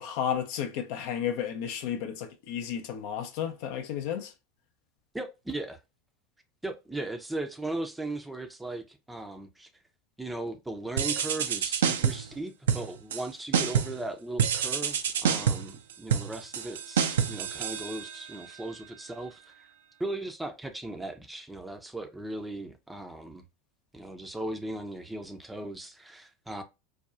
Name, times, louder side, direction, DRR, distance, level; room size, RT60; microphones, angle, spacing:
voice 1, 0.0-4.3, left 9 dB, 55° left, 0.5 m, -32 dB
voice 2, 5.1-5.8 6.6-9.7 10.2-19.7 20.0-23.4 23.9-26.6, right 2 dB, 5° right, 0.5 m, -37 dB
sound 1, 11.0-12.3 12.7-13.2 13.5-14.0 14.4-18.4, right 8 dB, 65° right, 0.4 m, -28 dB
4.2 x 2.3 x 2.4 m
figure-of-eight pair, 80°, 0 cm